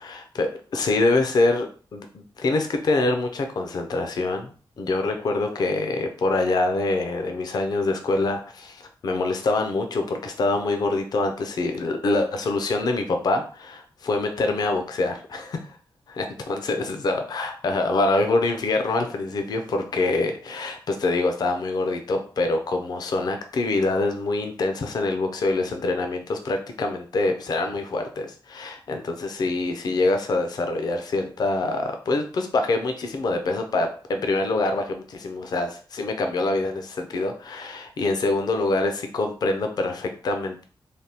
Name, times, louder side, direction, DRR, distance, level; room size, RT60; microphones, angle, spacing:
voice 1, 0.0-15.7 16.1-40.6, left 2 dB, 50° left, 5 dB, 0.4 m, -25 dB
3.3 x 2.2 x 2.8 m, 0.40 s
wide cardioid pair, 150°, 9 cm